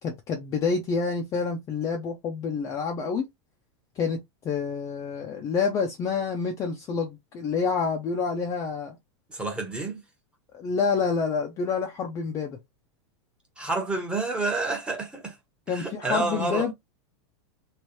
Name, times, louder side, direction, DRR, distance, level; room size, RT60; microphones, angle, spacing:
voice 1, 0.0-3.2 4.0-4.2 4.4-9.0 10.5-12.6 15.7-16.7, left 5 dB, 20° left, 0.6 m, -28 dB
voice 2, 9.3-10.0 13.6-15.4 15.7-16.7, right 3 dB, 5° right, 1.0 m, -29 dB
3.2 x 3.2 x 3.0 m
supercardioid pair, 165°, 15 cm